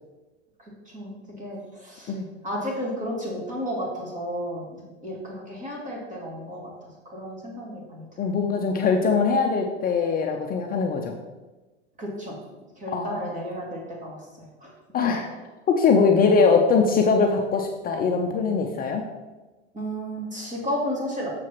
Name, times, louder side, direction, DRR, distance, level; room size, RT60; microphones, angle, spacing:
voice 1, 0.9-2.1 2.4-8.1 12.0-12.3 12.8-14.7 19.7-21.3, equal, 20° right, -3 dB, 2.5 m, -33 dB
voice 2, 8.2-11.1 12.9-13.4 14.9-15.3 15.7-19.0, left 5 dB, 25° left, 2 dB, 0.6 m, -22 dB
6.7 x 4.6 x 5.9 m, 1.2 s
hypercardioid pair, 120°, 36 cm